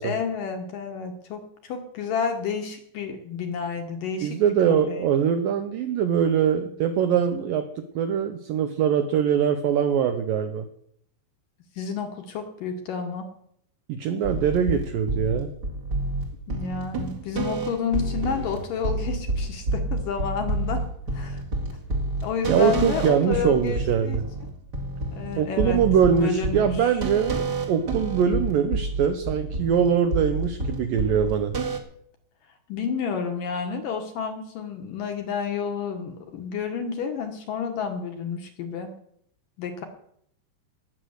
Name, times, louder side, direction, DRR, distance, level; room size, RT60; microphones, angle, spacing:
voice 1, 0.0-4.4 4.7-5.1 11.8-13.3 16.5-20.8 21.1-21.4 22.2-24.2 25.1-25.8 26.2-26.9 32.7-38.9 39.6-39.9, left 6 dB, 65° left, 5 dB, 2.3 m, -30 dB
voice 2, 4.2-10.7 13.9-15.5 22.5-24.2 25.4-31.5, right 8 dB, 80° right, 8 dB, 2.0 m, -23 dB
sound 1, 14.2-31.8, right 2 dB, 40° right, 1.5 m, -29 dB
18.5 x 6.5 x 7.9 m, 0.69 s
omnidirectional pair, 5.0 m